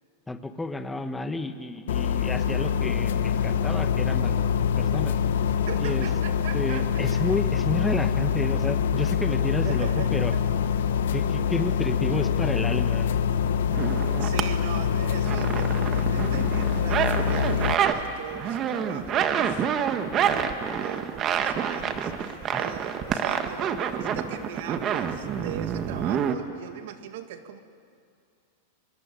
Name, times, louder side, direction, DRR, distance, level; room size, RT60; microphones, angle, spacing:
voice 1, 0.3-4.5 4.8-5.2 5.8-6.1 6.5-10.3 11.1-13.2 22.5-22.8, left 2 dB, 10° left, 8 dB, 1.4 m, -31 dB
sound 1, 1.9-17.7, left 7 dB, 80° left, 1.3 m, -25 dB
voice 2, 5.5-7.2 9.6-10.4 10.8-11.5 14.2-19.9 20.2-27.6, right 9 dB, 65° right, 8 dB, 1.9 m, -40 dB
sound 2, 13.7-14.4 14.8-18.0 18.3-26.4, right 8 dB, 35° right, 1.6 m, -27 dB
25.0 x 23.0 x 8.5 m, 2.3 s
hypercardioid pair, 130°, 0 cm